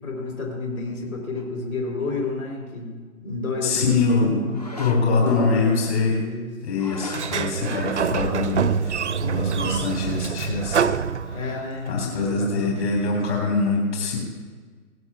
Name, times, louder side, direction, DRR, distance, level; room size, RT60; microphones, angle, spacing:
voice 1, 0.0-4.7 5.2-6.5 6.9-7.0 11.3-12.8, left 3 dB, 70° left, -1 dB, 4.0 m, -30 dB
sound 1, 1.4-1.5 4.5-5.3 6.7-7.6, left 2 dB, 30° left, 0.5 m, -37 dB
voice 2, 3.6-4.4 4.8-6.2 6.6-10.9 11.3-11.4 11.9-14.2, left 4 dB, 45° left, -1 dB, 3.7 m, -24 dB
Sliding door, 7.1-11.8, right 7 dB, 55° right, 0.5 m, -25 dB
18.5 x 15.0 x 2.4 m, 1.5 s
figure-of-eight pair, 150°, 45 cm